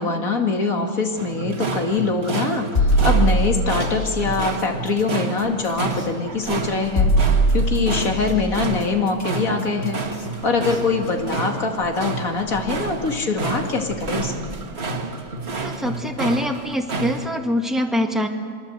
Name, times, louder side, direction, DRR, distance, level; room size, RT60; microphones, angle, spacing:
voice 1, 0.0-7.1 7.5-10.0 10.4-14.5, left 4 dB, 75° left, 3 dB, 2.6 m, -23 dB
sound 1, 1.2-17.3, right 3 dB, 45° right, 1.8 m, -30 dB
sound 2, 2.7-4.0 5.9-6.0 7.0-8.3 10.1-10.2 10.7-10.8, right 1 dB, 45° left, 2.4 m, -19 dB
voice 2, 15.6-18.3, equal, ahead, 2 dB, 1.9 m, -24 dB
26.5 x 22.5 x 7.9 m, 2.1 s
omnidirectional pair, 1.5 m